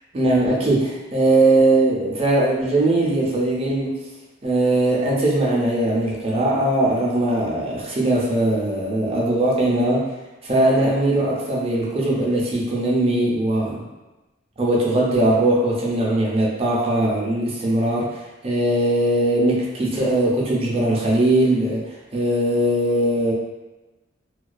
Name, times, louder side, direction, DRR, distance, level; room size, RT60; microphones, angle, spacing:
voice 1, 0.1-4.0 4.4-10.1 10.4-13.8 14.6-23.3, right 1 dB, 30° right, -4 dB, 0.5 m, -20 dB
2.2 x 2.2 x 2.5 m, 1.1 s
head